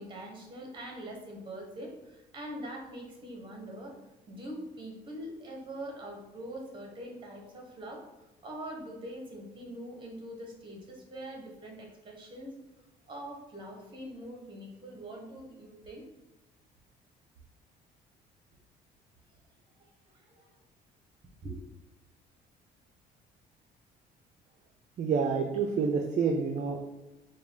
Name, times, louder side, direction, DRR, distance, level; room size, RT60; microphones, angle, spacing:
voice 1, 0.0-4.0 4.3-8.0 8.4-12.5 13.1-16.0 19.8-20.6 21.4-21.6, right 1 dB, 30° right, 1 dB, 1.1 m, -43 dB
voice 2, 25.0-26.8, right 5 dB, 45° right, 3 dB, 0.4 m, -28 dB
4.6 x 2.4 x 3.5 m, 1.0 s
cardioid pair, 110°, 17 cm